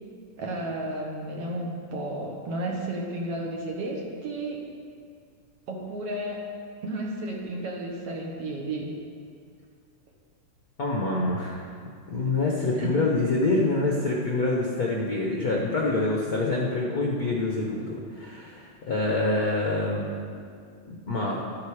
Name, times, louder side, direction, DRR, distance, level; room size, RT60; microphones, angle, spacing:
voice 1, 0.4-4.6 5.7-6.5 6.8-8.9 12.8-13.0, right 1 dB, 60° right, -1 dB, 2.1 m, -32 dB
voice 2, 10.8-11.7 12.1-20.1 20.9-21.4, left 2 dB, 70° left, -2 dB, 0.8 m, -26 dB
12.0 x 10.5 x 4.9 m, 2.2 s
omnidirectional pair, 3.4 m